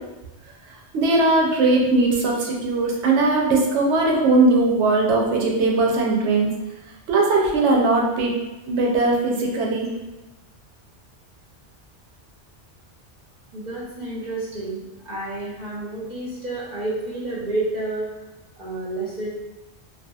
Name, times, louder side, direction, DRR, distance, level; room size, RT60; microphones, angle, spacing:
voice 1, 0.9-6.5 7.1-8.3 8.7-9.9, right 2 dB, 75° right, -1 dB, 0.9 m, -19 dB
voice 2, 13.5-18.1 18.6-19.3, right 2 dB, 45° right, -7 dB, 0.7 m, -30 dB
2.7 x 2.3 x 2.3 m, 1.1 s
omnidirectional pair, 1.2 m